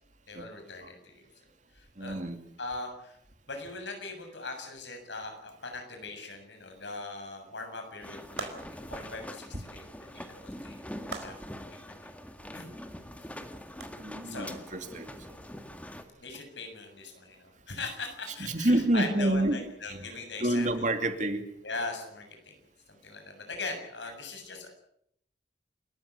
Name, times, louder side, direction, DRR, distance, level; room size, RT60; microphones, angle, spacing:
voice 1, 0.3-1.2 1.7-2.2 2.6-3.2 3.5-8.5 8.9-10.8 11.1-12.1 12.5-12.7 14.2-14.6 16.2-20.7 21.6-22.6 22.9-24.7, left 3 dB, 80° left, 5 dB, 7.2 m, -40 dB
voice 2, 2.0-2.4 14.0-15.4 18.4-19.6 19.9-21.4, right 1 dB, 45° right, 7 dB, 2.7 m, -28 dB
sound 1, 8.0-16.0, left 1 dB, 10° left, 1.8 m, -44 dB
sound 2, 8.4-9.0 11.1-11.7 13.8-13.9, right 3 dB, 70° right, 4.5 m, -40 dB
29.5 x 14.5 x 8.5 m, 0.72 s
head